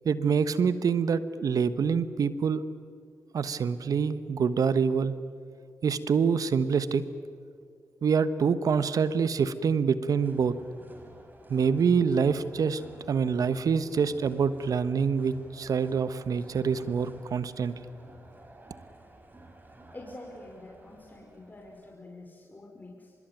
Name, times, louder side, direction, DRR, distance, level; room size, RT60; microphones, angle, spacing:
voice 1, 0.0-2.6 3.3-5.1 5.8-7.0 8.0-10.5 11.5-12.8 13.1-17.7, right 6 dB, 65° right, 14 dB, 1.2 m, -26 dB
sound 1, 10.1-21.9, right 1 dB, 30° right, 5.6 m, -52 dB
voice 2, 19.9-23.1, left 2 dB, 30° left, 0 dB, 5.2 m, -46 dB
24.5 x 22.0 x 9.3 m, 2.3 s
supercardioid pair, 40°, 6 cm